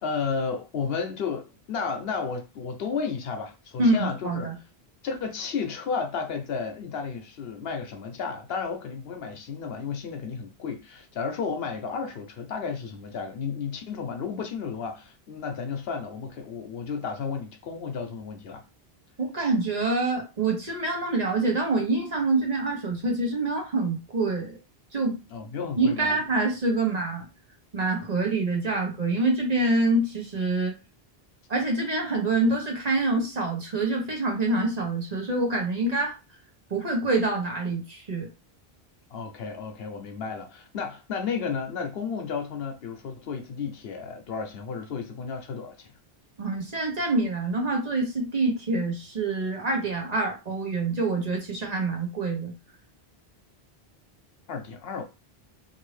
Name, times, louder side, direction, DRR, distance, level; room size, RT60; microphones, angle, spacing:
voice 1, 0.0-4.6 5.0-18.6 25.3-26.2 39.1-45.9 54.5-55.0, left 5 dB, 70° left, 0.8 m, -33 dB
voice 2, 3.8-4.5 19.2-24.6 24.9-25.2 25.8-27.3 27.7-30.7 31.5-36.1 36.7-38.3 46.4-52.5, right 2 dB, 45° right, 0.9 m, -26 dB
2.6 x 2.6 x 3.1 m
omnidirectional pair, 1.1 m